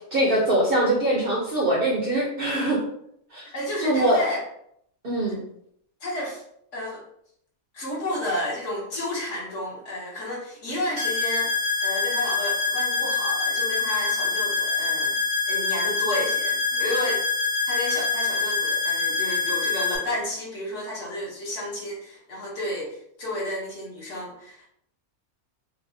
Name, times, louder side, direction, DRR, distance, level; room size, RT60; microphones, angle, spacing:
voice 1, 0.1-2.8 3.3-3.4 3.8-4.2 5.0-5.4, right 1 dB, 50° right, -3 dB, 0.7 m, -22 dB
voice 2, 3.5-4.5 6.0-6.4 6.7-7.0 7.7-15.2 15.5-17.2 17.7-24.7, left 1 dB, 60° left, -3 dB, 1.3 m, -31 dB
sound 1, 11.0-20.0, left 4 dB, 80° right, 1.5 m, -25 dB
4.5 x 2.1 x 2.6 m, 0.71 s
omnidirectional pair, 1.5 m